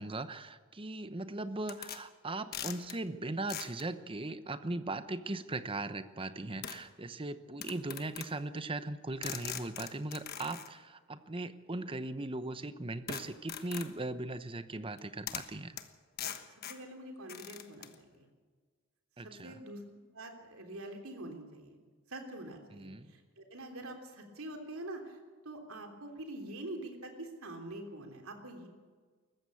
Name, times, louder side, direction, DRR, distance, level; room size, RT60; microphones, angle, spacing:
voice 1, 0.0-15.8 19.2-19.6 22.7-23.1, right 2 dB, 25° right, 12 dB, 0.9 m, -39 dB
sound 1, 1.7-2.0 2.5-3.0 3.5-3.8 5.3-5.4 6.6-6.8 7.6-8.3 9.2-10.7 13.1-14.0 15.0-15.1 15.3-15.5 15.8-15.9 16.2-16.8 17.3-18.0, left 9 dB, 45° left, 1.3 m, -42 dB
voice 2, 16.7-18.2 19.2-19.8 20.1-21.8 22.1-25.2 25.4-28.7, right 1 dB, 75° right, 3 dB, 3.4 m, -45 dB
21.0 x 14.5 x 8.5 m, 1.5 s
head